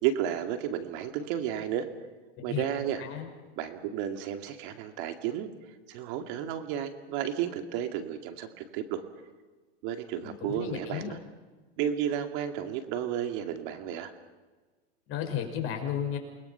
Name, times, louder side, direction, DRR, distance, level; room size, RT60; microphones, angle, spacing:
voice 1, 0.0-1.9 2.4-3.0 3.6-9.0 9.8-11.2 11.8-14.1, right 10 dB, 50° right, 6 dB, 2.5 m, -32 dB
voice 2, 10.2-11.2 15.1-16.2, left 9 dB, 40° left, 3 dB, 5.6 m, -33 dB
29.0 x 21.0 x 5.8 m, 1.3 s
hypercardioid pair, 125°, 33 cm